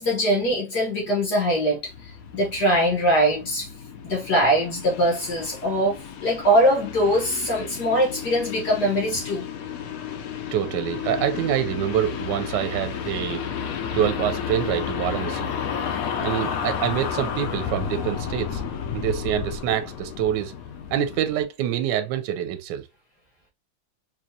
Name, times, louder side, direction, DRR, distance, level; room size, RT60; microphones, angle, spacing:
voice 1, 0.0-3.7 4.0-9.4, equal, 55° left, 1.7 m, -22 dB
sound 1, 1.8-21.4, left 7 dB, 75° left, 0.8 m, -32 dB
voice 2, 10.5-13.4 13.9-15.5 16.2-18.6 18.9-20.5 20.9-22.9, right 10 dB, 75° right, 1.1 m, -26 dB
4.5 x 2.6 x 2.7 m
omnidirectional pair, 2.2 m